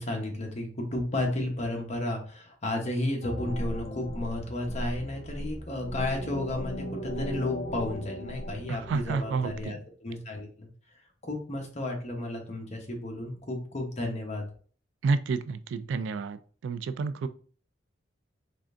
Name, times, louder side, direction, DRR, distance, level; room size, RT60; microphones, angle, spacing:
voice 1, 0.0-10.7 11.2-14.4, left 1 dB, 40° left, 1 dB, 0.9 m, -33 dB
sound 1, 3.2-9.7, equal, 75° left, 0.9 m, -37 dB
voice 2, 8.7-9.7 15.0-17.3, right 4 dB, 85° right, 12 dB, 0.3 m, -30 dB
3.7 x 3.3 x 2.5 m, 0.43 s
head